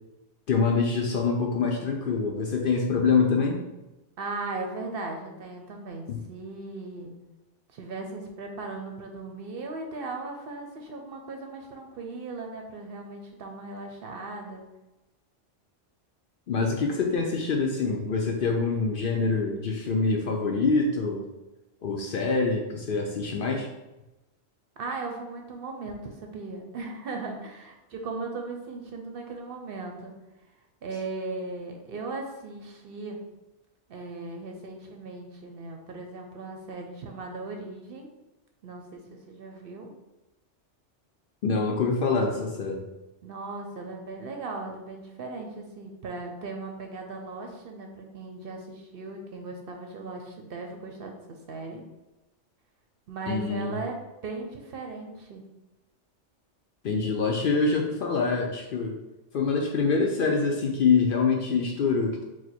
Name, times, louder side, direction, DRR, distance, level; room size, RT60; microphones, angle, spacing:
voice 1, 0.5-3.6 6.1-6.2 16.5-21.3 21.8-23.7 41.4-42.8 53.3-53.8 56.8-59.0 59.3-62.2, left 4 dB, 60° left, 1 dB, 0.6 m, -25 dB
voice 2, 4.2-7.1 7.7-14.6 24.8-30.1 30.8-33.2 33.9-38.1 38.6-39.9 43.2-51.8 53.1-54.0 54.2-55.4, right 3 dB, 60° right, 3 dB, 0.7 m, -37 dB
4.7 x 2.1 x 4.2 m, 1.0 s
omnidirectional pair, 1.2 m